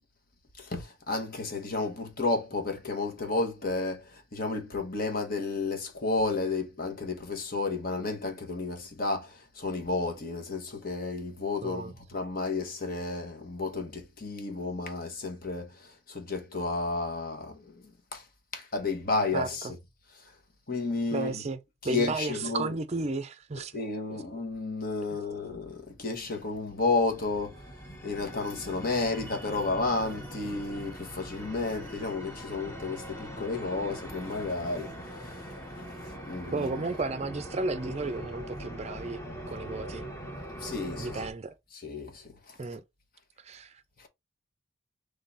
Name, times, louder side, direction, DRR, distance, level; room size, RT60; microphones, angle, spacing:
voice 1, 0.6-17.8 18.1-18.2 18.5-19.7 20.2-20.3 20.7-21.4 21.9-22.7 23.7-27.6 28.0-36.7 40.6-41.2 41.8-42.6 44.0-44.1, left 3 dB, 45° left, 1.2 m, -32 dB
voice 2, 11.6-12.0 19.3-19.5 21.1-21.6 21.8-23.7 24.1-24.2 36.5-39.2 39.5-40.1 41.0-41.5 42.6-42.8 43.4-43.8, right 3 dB, 35° right, 0.5 m, -33 dB
sound 1, 25.6-41.3, equal, 15° left, 1.0 m, -42 dB
3.8 x 3.3 x 4.0 m
head